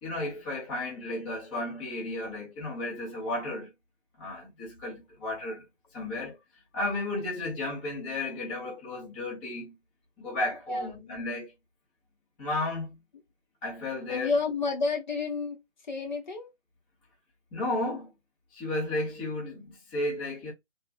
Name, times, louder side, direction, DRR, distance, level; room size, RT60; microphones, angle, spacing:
voice 1, 0.0-3.7 4.2-5.6 5.9-6.4 6.7-9.7 10.2-11.5 12.4-13.0 13.6-14.3 17.5-18.1 18.5-20.5, left 2 dB, 10° left, 0.8 m, -33 dB
voice 2, 10.7-11.3 14.1-15.6 15.9-16.5, left 4 dB, 40° left, 1.0 m, -30 dB
3.6 x 2.4 x 2.4 m
figure-of-eight pair, 145°, 36 cm